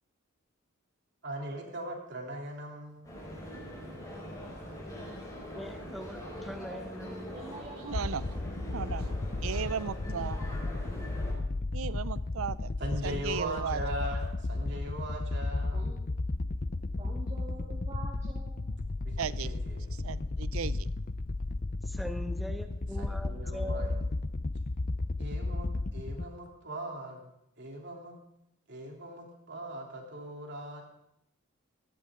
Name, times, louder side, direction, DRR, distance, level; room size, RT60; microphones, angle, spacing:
voice 1, 1.2-3.2 12.8-15.9 19.0-20.0 22.9-24.1 25.2-27.3 27.6-28.1 28.7-30.8, right 1 dB, 55° right, 0 dB, 3.2 m, -40 dB
sound 1, 3.0-11.3, equal, 15° left, 4.8 m, -43 dB
voice 2, 5.5-7.4 21.8-24.1, equal, ahead, 6 dB, 1.1 m, -41 dB
voice 3, 7.0-8.1 15.7-16.0 17.0-18.8, right 2 dB, 30° right, -5 dB, 2.4 m, -47 dB
voice 4, 7.8-8.2 8.7-9.1 9.4-10.4 11.7-12.7 13.0-13.8 19.2-19.5 20.0-20.9, right 7 dB, 80° right, 18 dB, 0.5 m, -35 dB
sound 2, 7.9-26.3, left 2 dB, 40° left, 0.6 m, -34 dB
17.5 x 15.5 x 3.7 m, 0.77 s
head